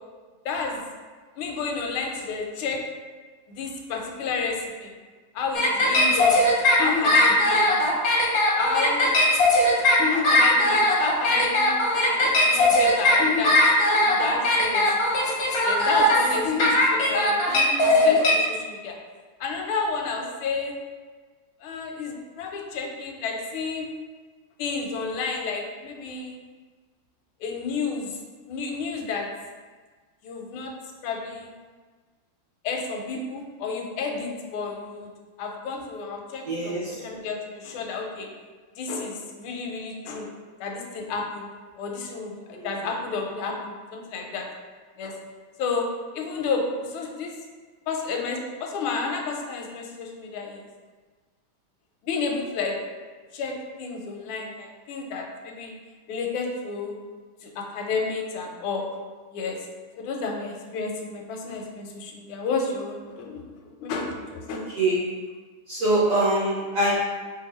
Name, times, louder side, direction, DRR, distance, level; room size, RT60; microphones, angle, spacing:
voice 1, 0.4-0.8 1.4-2.8 3.5-4.9 5.3-6.4 6.8-7.7 8.6-9.1 10.1-11.7 12.1-13.5 14.0-14.9 15.6-18.9 19.4-20.7 21.6-23.9 24.6-26.4 27.4-28.2 28.5-29.3 30.2-30.7 31.0-31.5 32.6-35.1 35.4-38.3 38.8-40.3 40.6-41.5 41.8-44.5 45.0-45.1 45.6-45.8 46.1-47.3 47.9-50.7 52.0-52.7 53.3-55.7 56.1-56.9 57.4-59.0 59.3-59.6 60.0-64.7, left 4 dB, 85° left, 1 dB, 1.4 m, -31 dB
sound 1, 5.5-18.3, left 1 dB, 65° left, 0.9 m, -20 dB
voice 2, 36.5-37.0 42.5-42.7 64.5-65.1 65.7-66.9, right 1 dB, 55° right, -8 dB, 1.0 m, -24 dB
3.3 x 2.5 x 4.1 m, 1.4 s
omnidirectional pair, 2.3 m